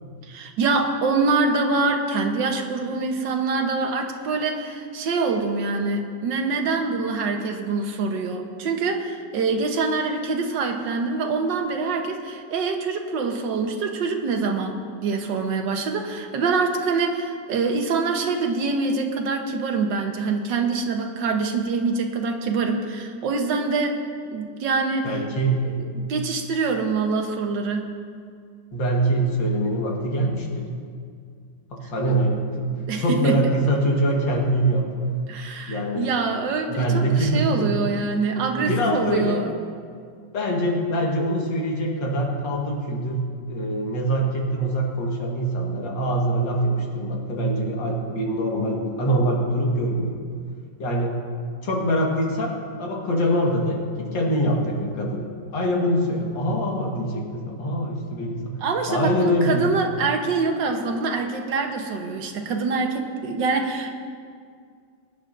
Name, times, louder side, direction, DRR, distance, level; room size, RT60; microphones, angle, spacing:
voice 1, 0.3-24.0 24.3-25.1 25.7-27.8 32.9-33.4 35.3-39.5 58.6-64.0, right 4 dB, 75° right, 4 dB, 1.7 m, -25 dB
voice 2, 25.0-25.7 28.7-30.7 31.7-32.7 33.0-34.9 35.7-36.1 36.7-37.7 38.5-39.4 40.3-50.2 50.8-51.2 51.6-58.6 58.9-59.6, right 1 dB, 90° left, -1 dB, 2.3 m, -24 dB
23.5 x 10.0 x 2.6 m, 2.2 s
omnidirectional pair, 2.0 m